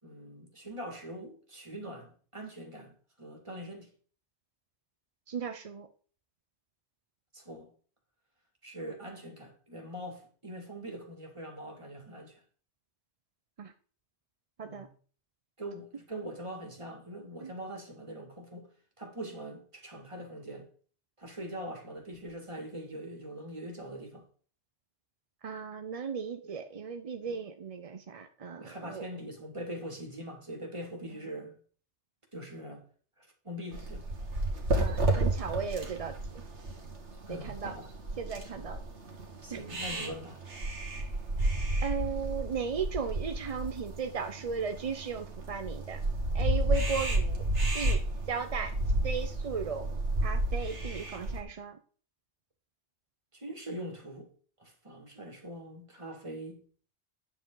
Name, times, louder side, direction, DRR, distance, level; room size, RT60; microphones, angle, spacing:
voice 1, 0.0-3.9 7.3-7.7 8.6-12.4 14.6-14.9 15.6-18.7 19.0-20.7 21.2-24.2 26.4-26.5 27.3-27.4 28.6-31.5 32.3-32.8 33.2-34.1 37.3-37.9 38.5-38.6 39.4-40.4 53.3-54.3 54.6-56.6, right 1 dB, 25° right, 2.1 m, -42 dB
voice 2, 5.3-5.9 13.6-13.7 14.6-14.9 17.4-17.5 25.4-29.1 34.7-36.4 37.3-37.7 38.2-38.8 39.5-39.6 41.8-46.0 46.3-47.5 47.7-48.0 48.3-48.7 49.0-51.8, right 5 dB, 45° right, 0.5 m, -36 dB
sound 1, 33.7-51.4, right 1 dB, 75° right, 1.9 m, -31 dB
9.2 x 7.3 x 3.8 m
omnidirectional pair, 1.2 m